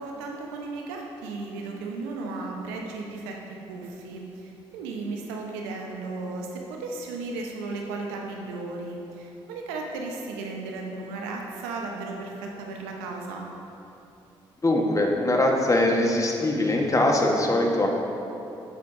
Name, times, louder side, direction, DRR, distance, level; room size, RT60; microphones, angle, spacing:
voice 1, 0.0-13.5, right 3 dB, 90° right, 1 dB, 0.8 m, -35 dB
voice 2, 14.6-17.9, left 1 dB, 25° left, 0 dB, 1.3 m, -22 dB
8.7 x 7.8 x 2.6 m, 2.9 s
hypercardioid pair, 50°, 12 cm